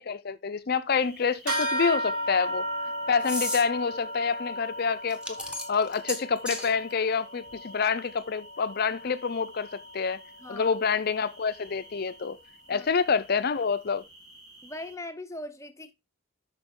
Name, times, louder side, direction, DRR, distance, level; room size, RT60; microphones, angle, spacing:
voice 1, 0.0-2.7 3.1-5.4 5.7-10.2 10.5-12.4 12.7-14.0, left 5 dB, 45° left, 0.5 m, -27 dB
sound 1, 0.9-15.0, right 1 dB, 85° right, 4.4 m, -54 dB
sound 2, 1.5-1.9 3.2-3.6 5.1-6.7, left 1 dB, 5° right, 1.3 m, -34 dB
sound 3, 1.5-11.3, equal, 70° right, 4.5 m, -35 dB
voice 2, 10.4-10.8 12.7-12.9 14.6-15.9, left 1 dB, 15° left, 0.7 m, -40 dB
7.9 x 5.9 x 3.7 m
head